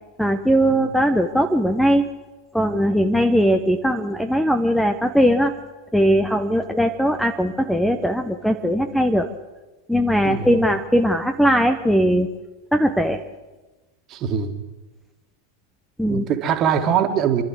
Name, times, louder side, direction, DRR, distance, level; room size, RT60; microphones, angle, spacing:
voice 1, 0.2-2.1 2.5-5.5 5.9-9.3 9.9-12.3 12.7-13.2 16.0-16.3, equal, ahead, 7 dB, 1.0 m, -19 dB
voice 2, 14.1-14.5 16.1-17.4, right 8 dB, 35° right, 6 dB, 2.2 m, -22 dB
27.5 x 12.0 x 7.8 m, 1.2 s
figure-of-eight pair, 90°, 0 cm